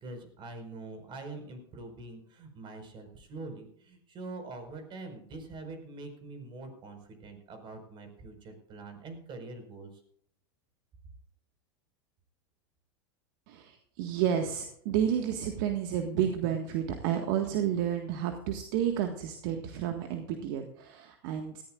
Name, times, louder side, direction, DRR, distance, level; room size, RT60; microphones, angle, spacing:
voice 1, 0.0-10.0, right 3 dB, 40° right, 6 dB, 5.0 m, -44 dB
voice 2, 13.5-21.6, right 9 dB, 60° right, 5 dB, 1.7 m, -31 dB
19.0 x 14.5 x 2.5 m, 0.68 s
hypercardioid pair, 95°, 12 cm